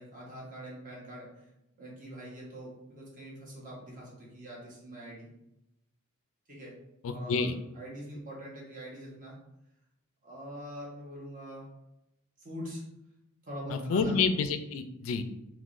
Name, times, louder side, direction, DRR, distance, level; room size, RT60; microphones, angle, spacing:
voice 1, 0.0-1.5 1.8-5.3 6.5-6.8 7.1-9.4 10.2-11.6 12.4-12.8 13.4-14.2, equal, 40° right, -4 dB, 1.1 m, -43 dB
voice 2, 7.0-7.5 13.7-15.2, left 5 dB, 70° left, 9 dB, 0.3 m, -29 dB
3.6 x 2.9 x 2.5 m, 0.89 s
head